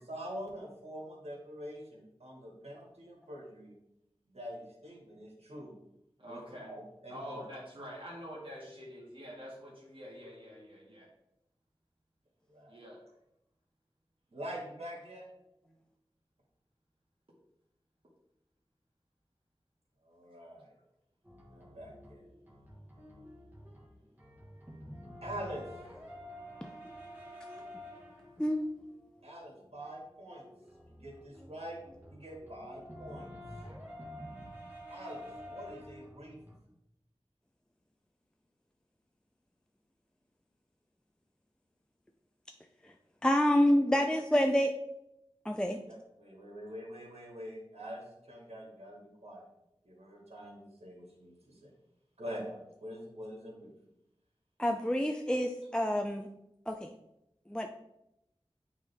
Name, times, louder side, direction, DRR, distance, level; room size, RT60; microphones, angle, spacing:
voice 1, 0.1-3.7 4.3-5.8 6.3-7.4 12.5-12.8 14.3-15.3 20.0-20.7 21.5-22.2 25.2-25.6 29.2-30.5 30.9-31.8 32.1-33.3 34.9-36.4 45.9-48.0 48.3-49.5 49.8-51.7 52.2-53.7, equal, 80° right, -2 dB, 2.2 m, -45 dB
voice 2, 6.2-6.7 7.1-11.1 12.7-13.0 15.7-15.8, equal, 55° right, -4 dB, 1.8 m, -46 dB
sound 1, 21.2-36.6, equal, 20° right, 1.6 m, -49 dB
voice 3, 43.2-44.7 45.5-45.8 54.6-56.3 56.7-56.9 57.5-57.7, equal, 10° left, 3 dB, 0.4 m, -27 dB
9.0 x 3.6 x 3.5 m, 0.85 s
wide cardioid pair, 55°, 10 cm